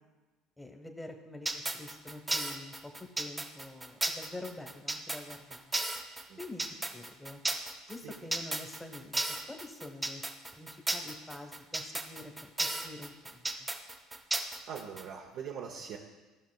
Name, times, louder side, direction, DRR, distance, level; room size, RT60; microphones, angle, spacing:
voice 1, 0.6-2.9 3.2-5.8 6.4-6.6 6.9-7.4 7.9-9.2 9.5-10.2 10.5-13.7, left 2 dB, 10° left, 5 dB, 1.2 m, -46 dB
sound 1, 1.5-15.0, right 2 dB, 15° right, 0.9 m, -34 dB
voice 2, 14.7-16.0, right 7 dB, 65° right, -1 dB, 0.8 m, -41 dB
14.0 x 5.7 x 2.3 m, 1.2 s
hypercardioid pair, 70°, 0 cm